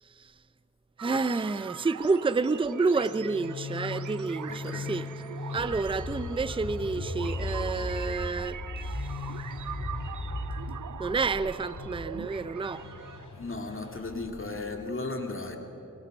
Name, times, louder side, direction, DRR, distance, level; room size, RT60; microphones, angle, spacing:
voice 1, 1.0-5.1 5.5-9.2 11.0-12.9, right 4 dB, 15° right, 0.5 m, -29 dB
sound 1, 1.0-13.3, right 9 dB, 70° right, 0.5 m, -43 dB
sound 2, 2.2-8.1, left 4 dB, 20° left, 1.8 m, -48 dB
sound 3, 3.0-14.8, left 2 dB, 75° left, 3.4 m, -38 dB
voice 2, 4.5-5.0 13.3-15.6, left 3 dB, 40° left, 2.3 m, -36 dB
23.0 x 22.0 x 6.5 m
wide cardioid pair, 110°, 31 cm